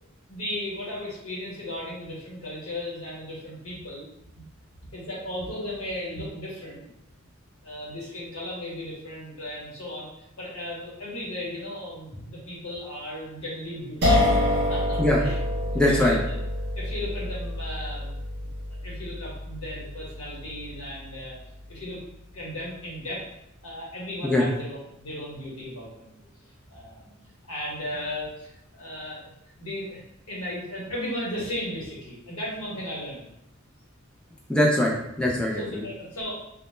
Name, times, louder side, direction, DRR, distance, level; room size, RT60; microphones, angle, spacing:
voice 1, 0.3-4.0 4.3-4.4 4.8-6.8 7.6-10.1 10.4-14.2 14.7-15.4 15.8-16.4 16.8-18.5 18.8-21.4 21.7-22.0 22.3-23.2 23.6-26.1 26.7-27.0 27.5-29.2 29.4-30.0 30.3-33.2 35.6-36.3, left 1 dB, 80° left, -5 dB, 0.9 m, -35 dB
sound 1, 14.0-21.0, left 1 dB, 55° right, 0.6 m, -27 dB
voice 2, 15.7-16.2 24.2-24.4 34.5-35.8, left 1 dB, 5° left, -3 dB, 0.3 m, -22 dB
2.0 x 2.0 x 3.1 m, 0.80 s
head